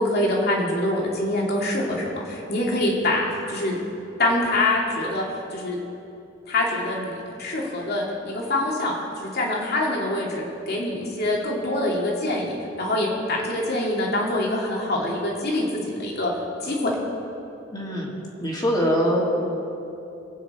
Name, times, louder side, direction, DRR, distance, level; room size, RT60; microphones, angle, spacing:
voice 1, 0.0-3.8 4.2-5.2 5.5-5.8 6.5-15.7 16.0-16.3 16.6-16.9, left 1 dB, 55° left, -2 dB, 2.6 m, -25 dB
voice 2, 17.7-18.1 18.4-19.3, equal, 20° left, -3 dB, 2.2 m, -23 dB
23.5 x 9.0 x 4.4 m, 2.9 s
head